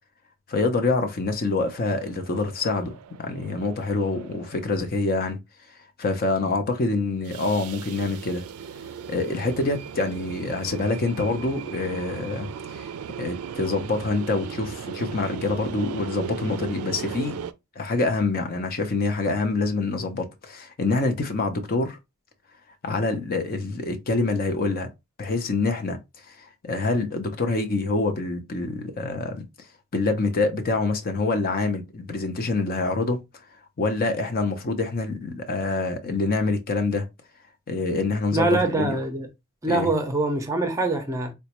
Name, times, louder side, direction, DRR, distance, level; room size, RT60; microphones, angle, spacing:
voice 1, 0.5-5.4 6.0-8.4 9.1-12.9 13.2-17.4 17.8-22.0 22.8-24.9 25.2-26.0 26.3-29.5 29.9-33.2 33.8-37.1 37.7-39.0 39.7-39.9, left 3 dB, 40° left, 0.5 m, -26 dB
sound 1, 1.7-4.8 7.1-17.5, right 7 dB, 75° right, 0.3 m, -37 dB
voice 2, 38.3-39.3 39.6-41.3, right 2 dB, 15° right, 0.6 m, -24 dB
4.0 x 2.2 x 2.9 m
head